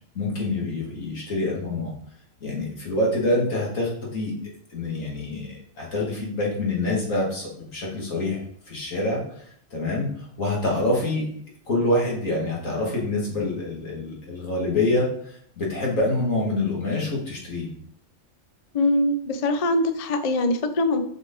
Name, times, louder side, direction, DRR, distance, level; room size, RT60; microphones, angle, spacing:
voice 1, 0.1-1.9 2.4-4.3 4.7-11.3 11.7-17.7, left 2 dB, 80° left, -3 dB, 2.5 m, -26 dB
voice 2, 18.7-21.1, left 1 dB, 40° left, 8 dB, 0.5 m, -22 dB
7.4 x 5.4 x 3.9 m, 0.66 s
omnidirectional pair, 1.4 m